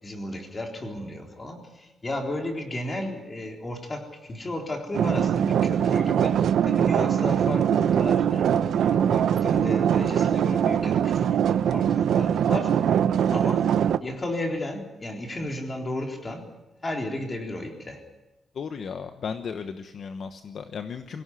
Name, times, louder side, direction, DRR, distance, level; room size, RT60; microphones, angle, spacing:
voice 1, 0.0-11.4 11.7-12.8 13.3-13.7 14.0-16.5 16.8-18.0, left 1 dB, 20° left, 3 dB, 3.8 m, -33 dB
sound 1, 4.9-14.0, right 9 dB, 80° right, 0.9 m, -22 dB
voice 2, 18.5-21.2, left 6 dB, 50° left, 8 dB, 1.1 m, -35 dB
24.0 x 17.0 x 9.9 m, 0.98 s
wide cardioid pair, 170°, 0 cm